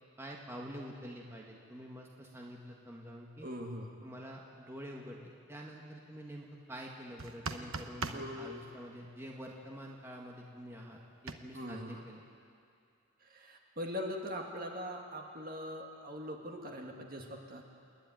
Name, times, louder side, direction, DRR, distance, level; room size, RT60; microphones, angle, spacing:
voice 1, 0.2-3.5 4.0-12.2, equal, 10° right, -1 dB, 1.5 m, -47 dB
voice 2, 3.4-4.0 8.1-8.6 11.5-12.0 13.3-17.6, equal, 45° right, 2 dB, 2.0 m, -41 dB
sound 1, 7.2-8.3 11.3-11.4, right 4 dB, 80° right, 1.1 m, -38 dB
29.0 x 10.5 x 9.1 m, 2.4 s
head